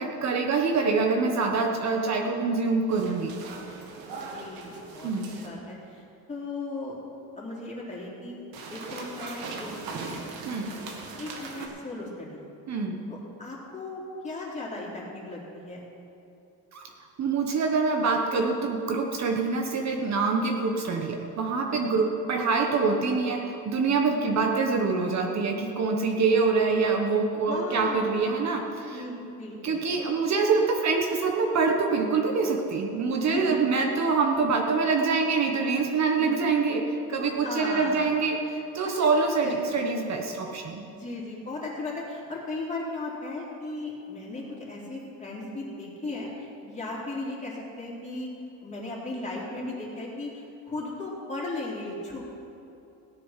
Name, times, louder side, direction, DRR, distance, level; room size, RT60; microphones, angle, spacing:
voice 1, 0.0-3.3 5.0-5.3 10.4-10.7 12.7-13.0 16.7-16.8 17.2-29.0 29.6-40.8, right 4 dB, 45° right, 2 dB, 1.3 m, -25 dB
voice 2, 1.8-2.5 4.1-6.0 6.3-7.0 7.3-8.4 8.7-10.1 11.2-12.4 13.1-15.8 21.7-22.3 24.2-24.8 27.5-28.1 28.9-29.8 33.3-33.9 36.2-36.5 37.4-38.0 38.8-39.1 39.4-39.5 40.3-40.4 40.9-48.3 48.6-52.3, left 2 dB, 20° left, -4 dB, 3.4 m, -37 dB
sound 1, 2.9-5.5 8.5-11.7, right 4 dB, 75° right, 2.0 m, -39 dB
17.0 x 9.4 x 5.8 m, 2.8 s
cardioid pair, 135°, 37 cm